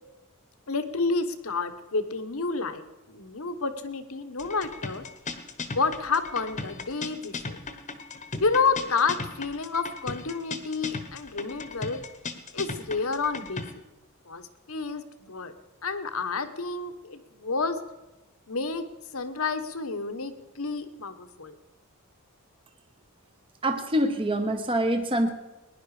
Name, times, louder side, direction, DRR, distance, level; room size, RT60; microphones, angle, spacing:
voice 1, 0.7-2.8 3.1-5.0 5.7-7.6 8.4-12.0 12.5-13.6 14.3-15.5 15.8-17.8 18.5-18.9 19.1-21.5, left 4 dB, 70° left, 9 dB, 1.2 m, -29 dB
sound 1, 4.4-13.7, left 3 dB, 35° left, 1.1 m, -37 dB
voice 2, 23.6-25.3, right 1 dB, 25° right, 6 dB, 1.0 m, -25 dB
20.5 x 10.5 x 4.9 m, 1.1 s
head